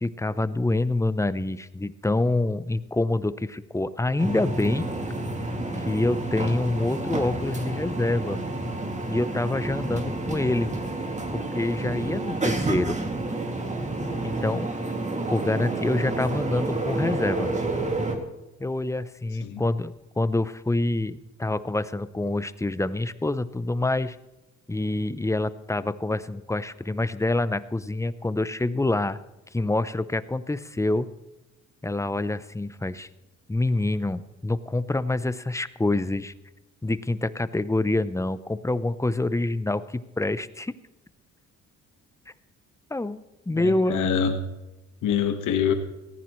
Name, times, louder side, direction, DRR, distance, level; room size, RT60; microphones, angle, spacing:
voice 1, 0.0-4.9 5.8-8.4 9.1-10.7 11.3-13.0 14.2-14.7 15.3-17.5 18.6-24.2 24.7-29.2 29.5-31.1 31.8-33.1 33.5-36.3 36.8-40.8 42.9-44.2, left 2 dB, 10° left, 15 dB, 0.7 m, -26 dB
sound 1, 4.2-18.1, right 2 dB, 25° right, 2.5 m, -29 dB
voice 2, 43.5-44.3 45.0-45.7, left 8 dB, 80° left, 6 dB, 1.6 m, -25 dB
18.5 x 15.0 x 3.2 m, 1.0 s
cardioid pair, 90°, 30 cm